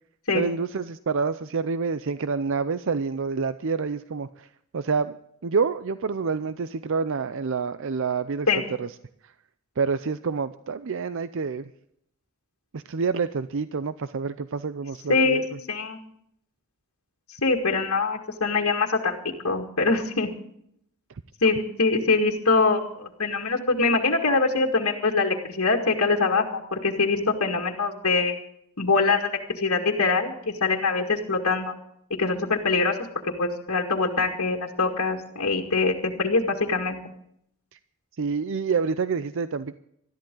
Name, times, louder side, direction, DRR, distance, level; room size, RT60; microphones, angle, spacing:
voice 1, 0.3-4.5 4.7-5.2 5.4-8.5 8.8-8.9 9.2-9.3 9.8-11.7 12.7-15.4 37.7-37.8 38.2-39.7, right 5 dB, 65° right, 13 dB, 0.6 m, -27 dB
voice 2, 15.1-15.4 15.7-16.0 17.4-19.2 19.4-20.3 21.4-28.4 28.8-31.7 32.2-33.0 33.4-37.0, left 3 dB, 80° left, 1 dB, 2.1 m, -23 dB
20.5 x 13.5 x 3.9 m, 0.71 s
head